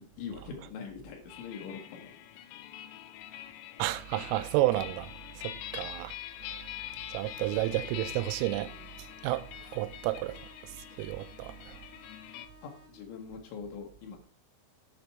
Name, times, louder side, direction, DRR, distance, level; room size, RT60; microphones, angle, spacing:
voice 1, 0.2-2.1 12.6-14.2, left 6 dB, 75° left, 3.4 m, -42 dB
sound 1, 1.3-12.5, left 12 dB, 90° left, 3.3 m, -44 dB
voice 2, 3.8-5.1 5.4-6.1 7.1-8.7 9.2-9.5 9.7-10.3 11.0-11.5, right 16 dB, 90° right, 3.2 m, -30 dB
sound 2, 7.2-13.2, left 1 dB, 65° right, 1.4 m, -57 dB
9.8 x 5.1 x 4.6 m
omnidirectional pair, 5.8 m